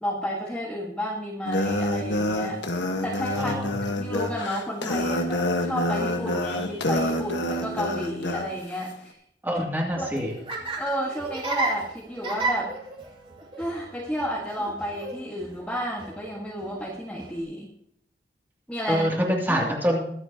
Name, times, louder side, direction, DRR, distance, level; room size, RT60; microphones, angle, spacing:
voice 1, 0.0-3.5 3.9-9.2 10.0-10.5 10.8-12.7 13.6-17.7 18.7-19.0 19.5-19.6, equal, 5° left, -4 dB, 1.7 m, -31 dB
sound 1, 1.4-8.5, left 1 dB, 75° left, 1.5 m, -27 dB
voice 2, 3.3-3.8 9.4-10.3 18.9-20.1, equal, 10° right, -2 dB, 2.7 m, -25 dB
Laughter, 9.9-17.4, right 3 dB, 30° right, 2.7 m, -34 dB
23.0 x 8.2 x 2.9 m, 0.71 s
head